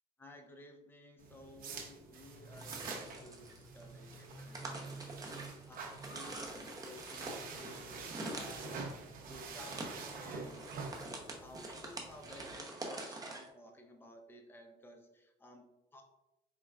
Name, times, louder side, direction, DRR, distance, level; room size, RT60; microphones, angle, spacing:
voice 1, 0.2-5.1 5.7-5.8 6.1-8.7 9.2-10.7 11.4-15.6 15.9-16.0, left 1 dB, 10° left, 3 dB, 0.6 m, -55 dB
sound 1, 1.2-12.5, right 4 dB, 55° right, 0.8 m, -47 dB
sound 2, 2.5-13.5, right 2 dB, 20° right, 0.8 m, -46 dB
4.5 x 3.7 x 2.3 m, 0.98 s
cardioid pair, 110°, 17 cm